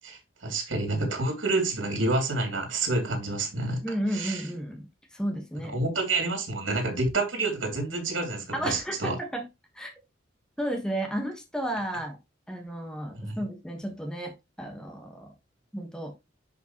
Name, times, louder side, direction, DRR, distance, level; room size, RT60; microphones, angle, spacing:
voice 1, 0.0-3.8 4.1-4.4 5.7-9.2 13.2-13.4, right 2 dB, 80° right, 3.0 m, -28 dB
voice 2, 3.8-5.8 8.5-9.4 9.7-9.9 10.6-12.2 12.5-14.3 14.6-15.3 15.7-16.1, right 1 dB, 5° left, 1.6 m, -33 dB
10.5 x 5.2 x 3.1 m
head